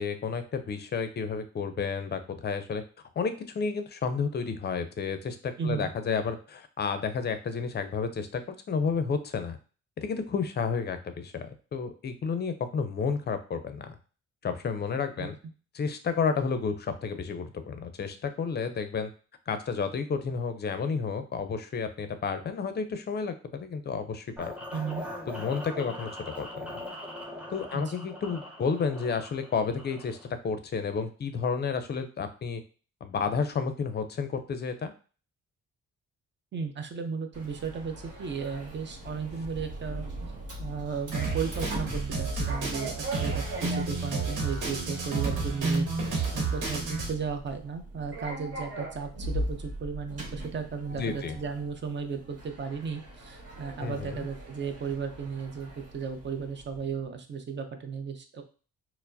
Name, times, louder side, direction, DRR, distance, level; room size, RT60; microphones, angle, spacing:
voice 1, 0.0-2.8 3.2-8.4 8.7-9.6 10.0-13.9 14.4-15.3 15.7-19.1 19.5-24.5 25.3-26.1 26.4-26.8 27.5-30.2 30.4-32.6 33.0-34.9 51.0-51.4 53.8-54.3, left 5 dB, 35° left, 9 dB, 0.5 m, -31 dB
voice 2, 5.6-5.9 15.2-15.3 24.7-25.0 27.7-27.9 36.5-40.1 40.6-58.4, right 6 dB, 40° right, 6 dB, 0.6 m, -35 dB
sound 1, 24.4-30.3, left 1 dB, 5° right, 0.7 m, -41 dB
Sliding door, 37.3-56.9, right 1 dB, 55° right, 1.3 m, -40 dB
Drum kit, 41.1-47.1, right 3 dB, 85° right, 1.0 m, -31 dB
4.4 x 2.0 x 2.6 m, 0.37 s
cardioid pair, 90°, 30 cm